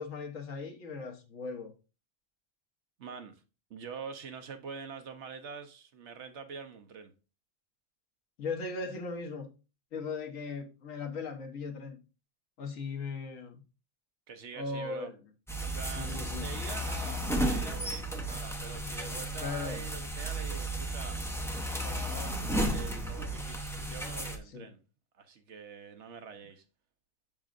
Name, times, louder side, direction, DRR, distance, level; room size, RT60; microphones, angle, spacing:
voice 1, 0.0-1.7 8.4-9.5 9.9-12.0 12.6-13.6 14.5-15.2 15.9-16.5 19.4-19.8 24.5-24.7, left 4 dB, 85° left, 1.5 m, -38 dB
voice 2, 3.0-3.4 3.7-7.1 14.3-15.1 15.6-21.2 21.8-24.8 25.2-26.6, right 6 dB, 65° right, 1.1 m, -45 dB
sound 1, 15.5-24.4, right 1 dB, 5° left, 0.6 m, -34 dB
7.3 x 6.1 x 2.5 m
omnidirectional pair, 1.3 m